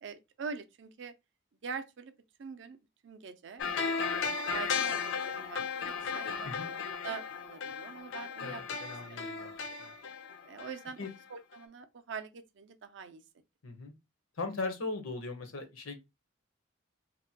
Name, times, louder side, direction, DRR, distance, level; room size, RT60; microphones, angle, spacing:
voice 1, 0.0-1.1 1.6-2.1 2.4-2.8 3.0-3.6 4.1-8.6 9.1-9.4 10.5-13.2, right 5 dB, 60° right, 0.4 m, -44 dB
sound 1, 3.6-11.2 11.5-11.6, left 5 dB, 60° left, 0.4 m, -35 dB
voice 2, 8.4-9.5 9.8-9.9 11.0-11.1 13.6-13.9 14.4-16.0, left 3 dB, 85° left, 0.7 m, -39 dB
2.8 x 2.1 x 2.7 m
head